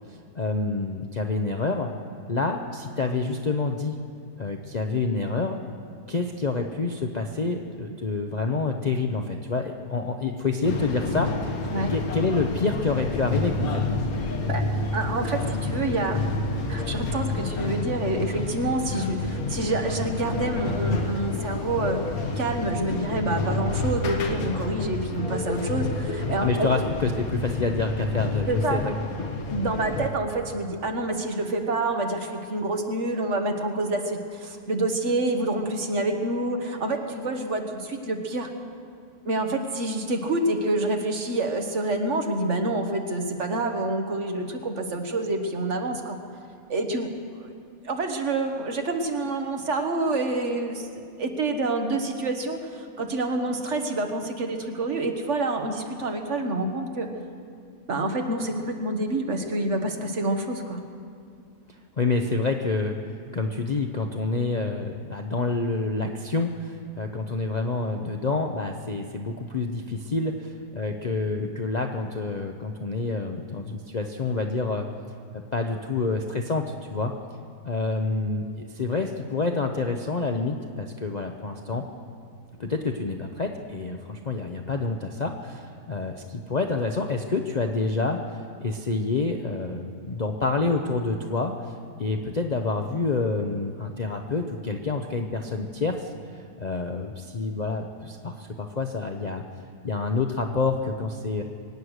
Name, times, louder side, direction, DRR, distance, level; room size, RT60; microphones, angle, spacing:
voice 1, 0.3-1.9 2.3-4.0 4.4-5.6 6.1-11.6 11.9-14.0 26.4-29.3 62.0-63.0 63.3-74.9 75.3-77.1 77.6-81.9 82.6-91.7 92.0-96.1 96.6-99.4 99.8-101.4, left 3 dB, 40° left, 3 dB, 0.6 m, -28 dB
sound 1, 10.6-30.1, left 2 dB, 70° left, 1.6 m, -29 dB
voice 2, 14.9-16.2 16.7-22.0 22.4-26.7 28.5-28.8 29.5-38.5 39.2-46.2 46.7-47.1 47.4-47.5 47.8-50.9 51.2-57.1 57.9-60.8, right 2 dB, 50° right, 4 dB, 1.5 m, -27 dB
24.0 x 9.4 x 6.5 m, 2.3 s
omnidirectional pair, 1.6 m